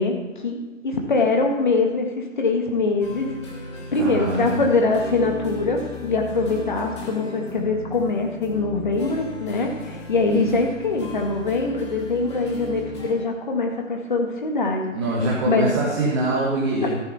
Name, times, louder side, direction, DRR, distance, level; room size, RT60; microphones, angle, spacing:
voice 1, 0.0-3.3 3.9-14.9 15.5-15.7 16.8-16.9, left 3 dB, 35° left, 2 dB, 1.7 m, -23 dB
sound 1, 3.0-13.1, left 3 dB, 20° left, 1.7 m, -37 dB
voice 2, 3.9-4.6 10.3-10.4 14.9-16.9, right 2 dB, 20° right, -6 dB, 1.7 m, -24 dB
13.5 x 9.1 x 4.2 m, 1.2 s
figure-of-eight pair, 150°, 39 cm